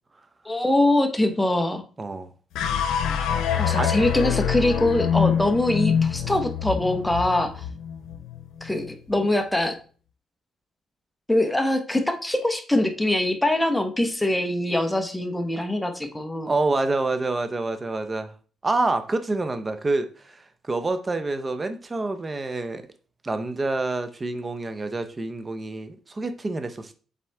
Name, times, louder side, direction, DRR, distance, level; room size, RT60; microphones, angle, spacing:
voice 1, 0.4-1.8 3.6-7.6 8.6-9.7 11.3-16.5, left 1 dB, 5° left, 1.2 m, -23 dB
voice 2, 2.0-2.3 3.7-3.9 16.5-18.3 18.6-22.8 23.2-26.9, right 2 dB, 25° right, 0.9 m, -27 dB
sound 1, 2.5-8.9, left 8 dB, 85° left, 0.9 m, -25 dB
7.3 x 4.2 x 3.5 m
cardioid pair, 90°, 0 cm